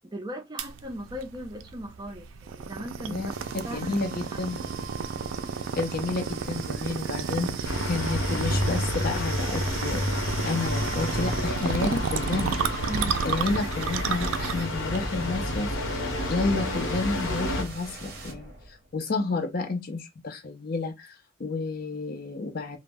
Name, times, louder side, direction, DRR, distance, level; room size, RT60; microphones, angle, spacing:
voice 1, 0.1-3.4 3.6-4.0 4.3-4.4 12.9-13.2, equal, 20° right, 0.4 m, -38 dB
sound 1, 0.6-16.9, right 6 dB, 85° right, 0.3 m, -33 dB
sound 2, 3.3-19.1, right 4 dB, 55° right, 0.7 m, -44 dB
voice 2, 3.7-4.6 5.7-10.1 10.5-12.6 13.2-15.7 16.3-18.5 18.9-22.8, left 3 dB, 50° left, 0.5 m, -30 dB
sound 3, 7.6-17.6, left 1 dB, 85° left, 0.7 m, -30 dB
2.0 x 2.0 x 3.4 m
head